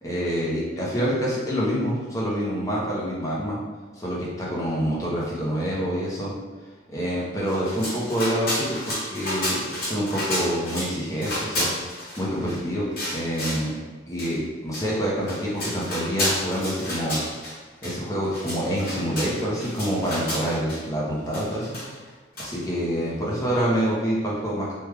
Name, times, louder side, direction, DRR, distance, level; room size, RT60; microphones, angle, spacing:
voice 1, 0.0-3.6 4.0-6.3 6.9-13.7 14.1-17.2 17.8-21.7 22.4-24.7, equal, 15° left, -6 dB, 0.7 m, -27 dB
sound 1, 7.5-10.9 11.2-12.6 13.0-13.7 14.2-14.3 14.7-14.8 15.2-17.5 17.8-17.9 18.2-20.8 21.3-22.1 22.4-22.5, left 1 dB, 50° left, 1.2 m, -30 dB
3.2 x 2.3 x 3.3 m, 1.3 s
head